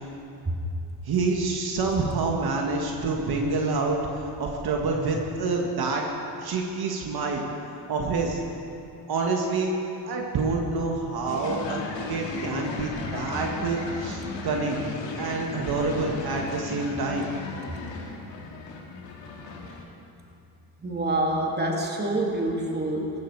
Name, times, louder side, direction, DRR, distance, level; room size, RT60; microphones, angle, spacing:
voice 1, 1.0-6.0 6.4-7.5 7.9-8.4 9.1-9.7 10.1-11.8 12.1-14.8 15.2-17.3, right 3 dB, 60° right, 0 dB, 1.9 m, -27 dB
sound 1, 11.3-19.8, left 3 dB, 85° left, 2.4 m, -36 dB
voice 2, 20.8-23.1, right 1 dB, 25° right, 0 dB, 2.8 m, -26 dB
17.0 x 14.5 x 4.8 m, 2.7 s
cardioid pair, 85°, 42 cm